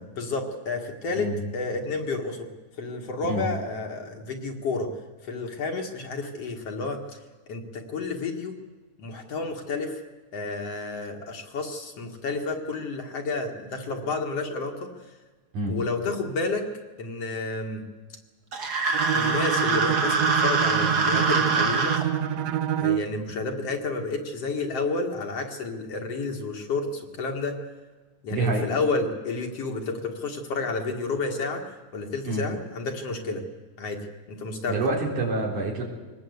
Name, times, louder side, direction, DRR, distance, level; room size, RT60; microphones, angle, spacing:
voice 1, 0.1-2.5 2.8-4.9 5.2-7.0 7.5-8.6 9.0-10.0 10.3-14.9 15.7-16.7 17.0-17.8 19.1-22.0 22.8-27.6 28.2-33.5 33.8-34.8, left 3 dB, 55° left, 2 dB, 2.7 m, -30 dB
sound 1, 18.5-22.0, right 4 dB, 35° right, 2.1 m, -24 dB
Bowed string instrument, 18.9-23.2, right 10 dB, 70° right, 2.0 m, -27 dB
voice 2, 28.3-28.7 32.3-32.5 34.7-35.8, right 2 dB, 85° right, 0 dB, 5.3 m, -27 dB
23.0 x 19.5 x 8.2 m, 1.3 s
omnidirectional pair, 3.4 m